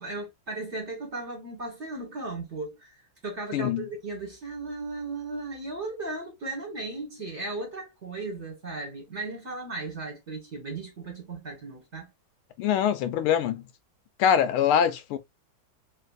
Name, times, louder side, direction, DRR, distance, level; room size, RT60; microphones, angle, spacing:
voice 1, 0.0-2.9 3.2-12.1, right 3 dB, 40° right, 1.3 m, -36 dB
voice 2, 3.5-3.8 12.6-13.6 14.2-15.2, left 9 dB, 80° left, 1.5 m, -23 dB
3.3 x 3.1 x 2.3 m
omnidirectional pair, 2.3 m